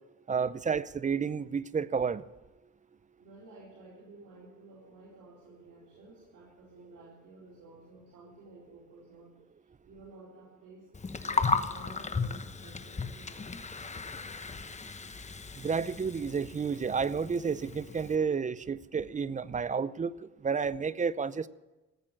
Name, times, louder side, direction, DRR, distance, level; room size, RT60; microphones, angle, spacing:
voice 1, 0.3-2.3 15.6-20.1 20.4-21.5, right 6 dB, 25° right, 17 dB, 0.6 m, -31 dB
voice 2, 3.2-10.9 11.2-14.1 14.5-14.6, right 2 dB, 75° right, -6 dB, 4.5 m, -54 dB
Gurgling, 10.9-18.2, left 4 dB, 25° left, 1.1 m, -35 dB
15.5 x 8.6 x 8.9 m, 1.1 s
cardioid pair, 90°, 30 cm